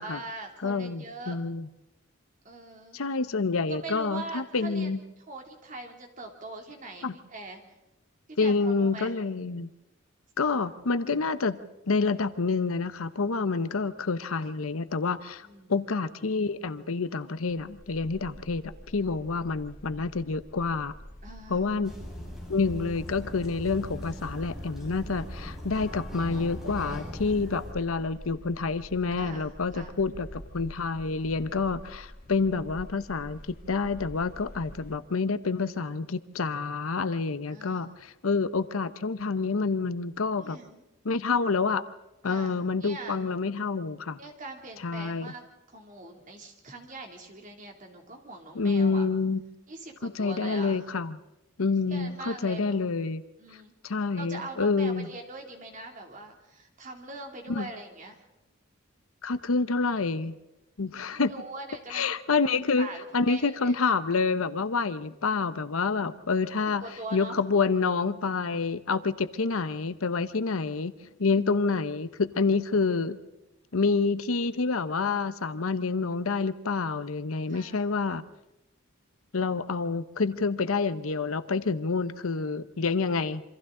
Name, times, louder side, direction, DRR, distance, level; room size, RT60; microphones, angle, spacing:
voice 1, 0.0-1.4 2.4-3.0 3.7-4.9 5.3-7.7 8.4-9.1 15.4-15.7 21.2-21.7 29.1-30.0 37.5-37.9 40.4-40.8 42.2-43.2 44.2-45.4 45.7-49.1 49.7-50.8 51.9-52.8 53.4-53.7 54.1-58.2 61.1-62.1 62.8-63.7 66.8-67.4 77.5-77.9, right 2 dB, 40° right, 3 dB, 2.7 m, -42 dB
voice 2, 0.6-1.7 2.9-5.0 7.0-7.2 8.4-9.7 10.4-11.6 11.9-20.9 21.5-21.9 22.5-33.4 33.7-40.6 41.0-41.8 42.2-44.2 44.8-45.3 48.5-49.4 50.0-51.2 51.6-53.2 53.8-55.1 57.5-57.7 59.2-60.4 60.8-61.3 61.9-70.9 71.2-73.2 73.7-78.2 79.3-83.4, left 4 dB, 85° left, 13 dB, 0.8 m, -28 dB
sound 1, 17.5-35.0, equal, 40° left, 2.4 m, -47 dB
sound 2, 21.8-27.7, equal, ahead, 5.4 m, -40 dB
27.5 x 24.5 x 3.8 m, 0.99 s
head